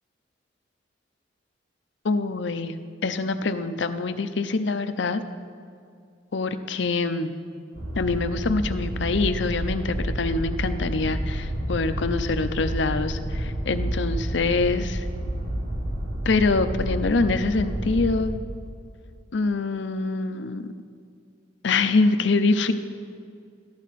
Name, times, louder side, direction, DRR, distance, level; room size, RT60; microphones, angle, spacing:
voice 1, 2.0-5.2 6.3-7.3 8.0-15.1 16.3-18.4 19.3-20.7 21.6-22.7, left 3 dB, 70° left, 10 dB, 0.6 m, -25 dB
sound 1, 7.7-18.2, right 1 dB, 60° right, 3.0 m, -29 dB
14.5 x 12.0 x 4.2 m, 2.3 s
head